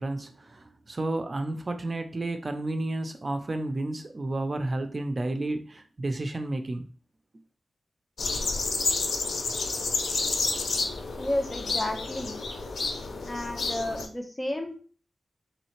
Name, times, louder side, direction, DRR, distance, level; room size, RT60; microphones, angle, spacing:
voice 1, 0.0-6.8, right 2 dB, 45° right, 0.5 m, -31 dB
sound 1, 8.2-14.1, left 3 dB, 85° left, 0.5 m, -30 dB
voice 2, 11.2-12.4 13.2-14.8, left 1 dB, 25° left, 0.9 m, -32 dB
4.0 x 3.1 x 3.1 m
cardioid pair, 55°, 0 cm